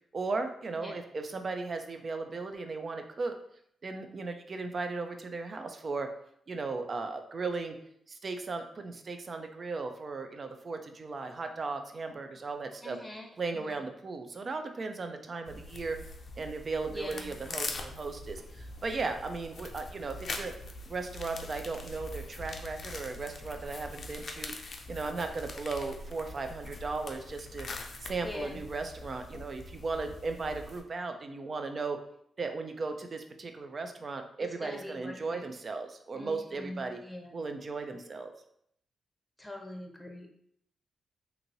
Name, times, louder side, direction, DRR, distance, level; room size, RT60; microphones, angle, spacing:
voice 1, 0.1-3.3 3.8-6.1 6.5-7.8 8.1-13.0 13.4-16.0 16.4-20.5 20.9-27.7 28.0-32.0 32.4-37.0 37.3-38.3, right 3 dB, 50° right, 6 dB, 0.4 m, -36 dB
voice 2, 12.8-13.3 13.5-13.8 16.9-17.3 28.2-28.6 34.4-35.4 36.1-37.3 39.4-40.3, left 1 dB, 5° left, 0 dB, 0.7 m, -43 dB
sound 1, 15.5-30.8, left 2 dB, 60° left, 0.4 m, -43 dB
2.9 x 2.7 x 2.6 m, 0.69 s
cardioid pair, 60°, 0 cm